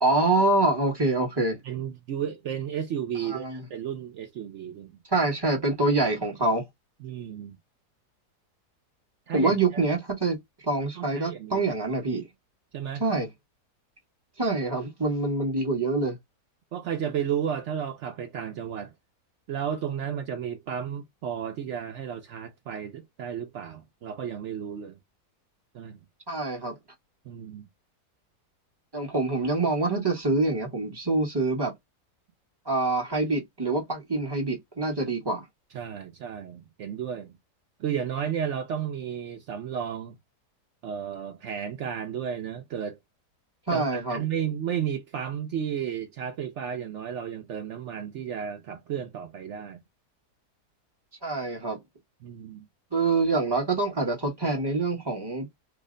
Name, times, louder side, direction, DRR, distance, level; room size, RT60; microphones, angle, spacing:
voice 1, 0.0-1.6 3.3-3.6 5.1-6.6 9.3-12.3 13.0-13.3 14.4-16.2 26.3-26.7 28.9-31.7 32.7-35.4 43.7-44.2 51.2-51.8 52.9-55.5, right 2 dB, 15° right, 1.0 m, -25 dB
voice 2, 1.6-5.0 7.0-7.6 9.3-9.8 10.9-11.6 12.7-13.0 16.7-18.9 19.5-25.0 25.7-26.0 27.2-27.7 35.7-37.4 37.8-40.2 40.8-43.0 43.7-49.8 52.2-52.7, right 8 dB, 75° right, 0.7 m, -33 dB
3.2 x 2.1 x 3.6 m
omnidirectional pair, 1.8 m